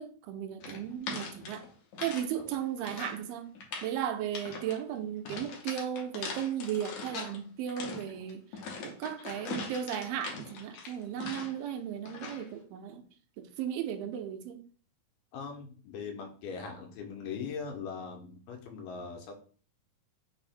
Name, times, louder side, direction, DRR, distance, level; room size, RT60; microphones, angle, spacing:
voice 1, 0.0-1.6 2.0-3.5 3.8-13.0 13.4-14.6, right 9 dB, 85° right, 2.4 m, -36 dB
Walking old floor, 0.6-2.3 2.5-3.2 3.6-3.9 4.3-4.8 5.3-7.4 7.7-11.7 12.1-12.5, left 4 dB, 70° left, 1.9 m, -41 dB
voice 2, 15.3-19.3, left 5 dB, 85° left, 2.3 m, -40 dB
5.6 x 2.0 x 4.1 m
omnidirectional pair, 4.0 m